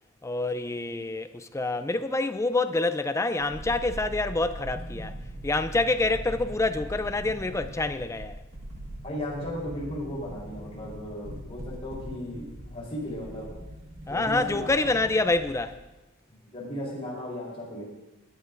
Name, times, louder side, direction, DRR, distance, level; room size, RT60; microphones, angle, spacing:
voice 1, 0.2-5.1 5.4-8.4 14.1-15.8, left 2 dB, 15° left, 0.4 m, -27 dB
sound 1, 3.4-15.8 16.0-16.1, right 1 dB, 70° right, 1.6 m, -41 dB
voice 2, 9.0-13.5 14.1-15.0 16.5-17.8, left 1 dB, 30° left, 3.7 m, -36 dB
18.0 x 9.7 x 2.5 m
head